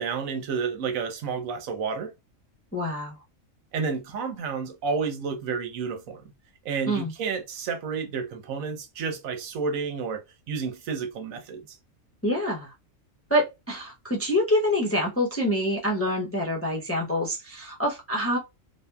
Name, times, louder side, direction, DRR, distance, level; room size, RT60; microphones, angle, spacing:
voice 1, 0.0-2.1 3.7-6.2 6.6-10.2 10.5-11.6, right 5 dB, 80° right, 1.1 m, -30 dB
voice 2, 2.7-3.2 6.9-7.1 12.2-12.7 13.3-18.4, equal, 15° left, 0.4 m, -26 dB
2.8 x 2.3 x 2.2 m
omnidirectional pair, 1.4 m